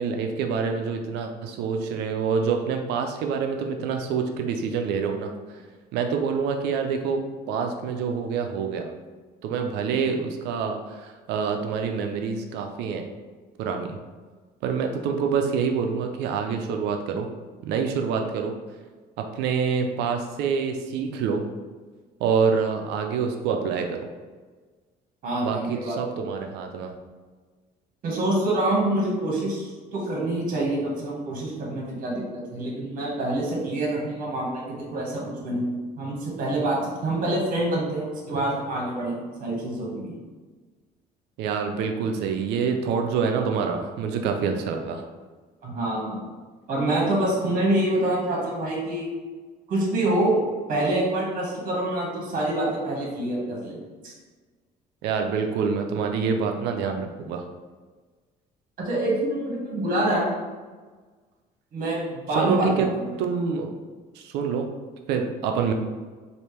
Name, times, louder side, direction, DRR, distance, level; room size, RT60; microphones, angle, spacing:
voice 1, 0.0-5.3 5.9-7.2 7.5-8.9 9.4-13.1 13.6-14.0 14.6-17.3 17.6-18.5 19.2-21.4 22.2-24.1 25.4-26.9 41.4-45.0 55.0-57.4 62.4-62.9 63.1-63.7 64.2-64.7 65.1-65.7, right 6 dB, 85° right, 5 dB, 0.4 m, -26 dB
voice 2, 25.2-26.0 28.0-35.7 36.0-40.1 45.6-46.2 46.7-49.1 49.7-50.4 50.7-54.1 58.8-60.3 61.7-63.1, right 1 dB, 55° right, -3 dB, 1.4 m, -26 dB
4.3 x 2.6 x 3.3 m, 1.4 s
cardioid pair, 110°, 17 cm